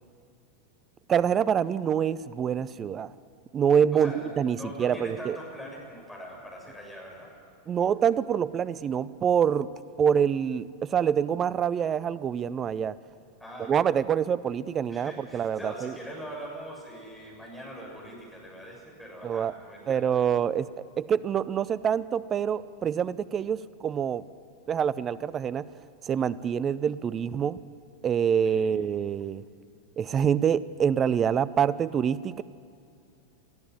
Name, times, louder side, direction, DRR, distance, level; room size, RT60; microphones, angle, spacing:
voice 1, 1.1-3.1 3.5-5.4 7.7-9.7 10.0-12.9 13.7-15.9 19.2-19.5 19.9-20.7 21.0-24.2 24.7-25.7 26.0-27.6 28.0-29.4 30.0-32.4, right 8 dB, 25° right, 18 dB, 0.5 m, -26 dB
voice 2, 3.9-7.3 13.4-13.8 14.9-20.0 28.4-28.7, equal, 5° left, -3 dB, 6.9 m, -42 dB
21.5 x 14.0 x 9.3 m, 2.5 s
figure-of-eight pair, 90°, 0 cm